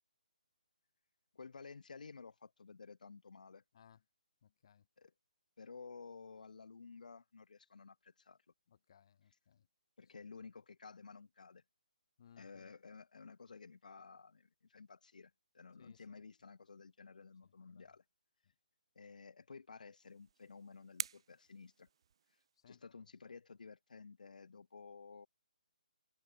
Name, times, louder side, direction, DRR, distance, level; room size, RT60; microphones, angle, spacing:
voice 1, 1.3-3.6 5.0-5.1 5.6-8.4 10.0-11.6 12.4-18.0 18.9-21.9 22.7-25.3, left 5 dB, 70° left, 6.4 m, -54 dB
voice 2, 4.4-4.9 8.7-9.7 12.2-12.7 15.8-16.2 17.4-18.0 22.6-22.8, left 8 dB, 40° left, 5.8 m, -65 dB
sound 1, 19.9-22.6, right 8 dB, 40° right, 1.6 m, -48 dB
hypercardioid pair, 170°, 4 cm